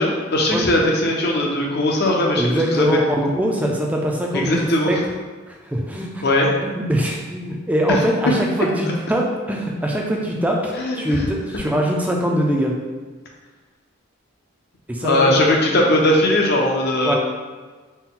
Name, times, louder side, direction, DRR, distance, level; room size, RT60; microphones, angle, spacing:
voice 1, 0.0-3.0 4.3-4.9 6.2-6.5 10.8-11.2 15.0-17.1, left 1 dB, 50° left, -1 dB, 0.6 m, -19 dB
voice 2, 2.4-5.0 5.5-6.2 6.6-12.7 14.9-15.3 17.0-17.1, equal, 5° right, -1 dB, 0.4 m, -22 dB
4.2 x 2.2 x 3.7 m, 1.4 s
head